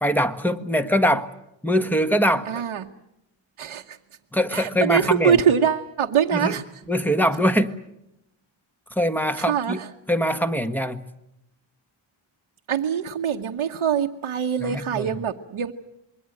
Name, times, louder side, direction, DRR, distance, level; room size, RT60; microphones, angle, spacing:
voice 1, 0.0-1.3 1.6-2.5 4.3-5.4 6.3-6.5 6.9-7.7 9.0-9.8 10.1-11.0 14.6-15.2, equal, 5° left, 8 dB, 1.5 m, -22 dB
voice 2, 2.5-2.9 3.6-4.0 4.5-6.6 9.4-9.9 12.7-15.7, right 8 dB, 85° right, 1 dB, 1.2 m, -23 dB
27.0 x 22.0 x 7.8 m, 0.85 s
wide cardioid pair, 95°, 48 cm